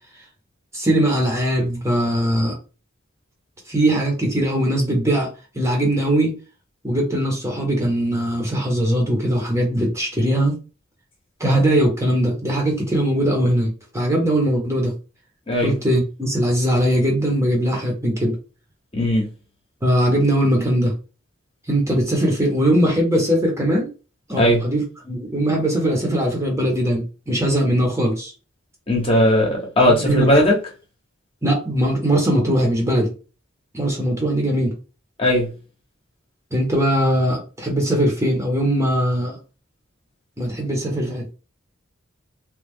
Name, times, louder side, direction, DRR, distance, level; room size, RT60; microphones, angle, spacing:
voice 1, 0.7-2.5 3.7-6.3 6.8-10.6 11.4-14.9 15.6-18.3 19.8-20.9 21.7-23.9 24.3-28.3 29.9-30.3 31.4-33.1 33.7-34.7 36.5-39.4 40.4-41.3, right 1 dB, 15° right, 1.0 m, -20 dB
voice 2, 18.9-19.2 24.4-24.6 28.9-30.5 35.2-35.5, left 1 dB, 25° left, 1.0 m, -17 dB
3.1 x 2.4 x 3.6 m
head